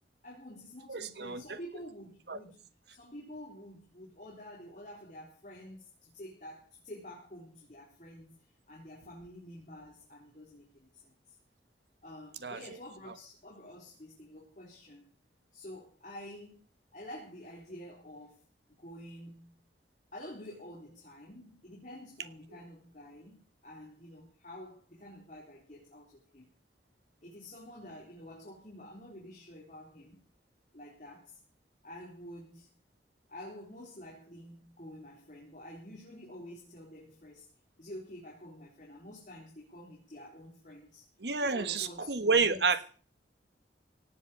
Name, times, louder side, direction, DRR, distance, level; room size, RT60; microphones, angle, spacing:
voice 1, 0.2-8.4 8.7-11.1 12.0-15.0 15.5-16.6 16.9-18.4 18.8-19.6 20.1-26.5 27.2-30.2 30.7-31.4 31.8-32.7 33.3-37.5 37.8-41.1 41.4-42.6, left 1 dB, 45° left, -3 dB, 4.2 m, -49 dB
voice 2, 0.9-1.6 2.3-2.4 12.4-12.6 13.1-13.2 41.2-42.8, right 4 dB, 70° right, 12 dB, 1.5 m, -29 dB
18.0 x 7.7 x 8.7 m, 0.41 s
head